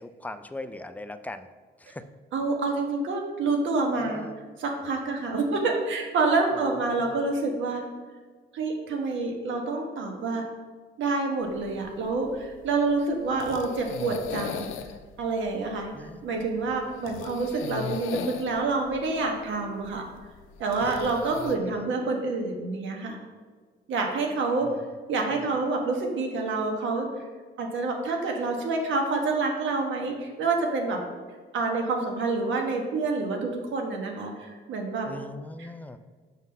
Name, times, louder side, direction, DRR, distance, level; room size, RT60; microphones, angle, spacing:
voice 1, 0.0-1.5 1.8-2.0 4.0-4.4 6.5-7.2 15.9-16.4 20.8-21.2 24.6-24.8 25.3-25.4 35.1-36.0, left 2 dB, 10° left, 10 dB, 0.4 m, -40 dB
voice 2, 2.3-4.2 4.6-7.8 8.5-10.4 11.0-14.7 15.2-15.9 16.2-20.0 20.6-23.2 23.9-24.7 25.1-27.1 27.6-31.0 31.5-35.1 35.6-35.7, right 3 dB, 75° right, 2 dB, 1.3 m, -27 dB
sound 1, 11.5-21.6, left 7 dB, 85° left, 0.5 m, -39 dB
6.1 x 3.9 x 5.4 m, 1.5 s
cardioid pair, 90°, 20 cm